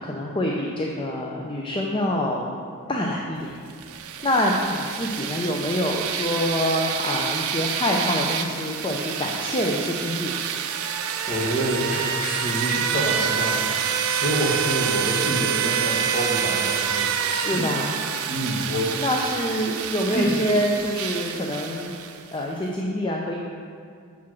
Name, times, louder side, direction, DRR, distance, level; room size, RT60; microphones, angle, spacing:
voice 1, 0.0-2.5 2.9-3.6 4.2-10.4 17.3-17.9 19.0-21.9 22.3-23.4, left 1 dB, 25° left, -1 dB, 0.5 m, -26 dB
sound 1, 3.7-22.4, right 8 dB, 70° right, 0.5 m, -27 dB
voice 2, 11.3-17.2 17.5-17.6 17.9-18.9 20.1-20.3, equal, 40° left, -3 dB, 1.3 m, -27 dB
7.0 x 4.8 x 6.0 m, 2.2 s
head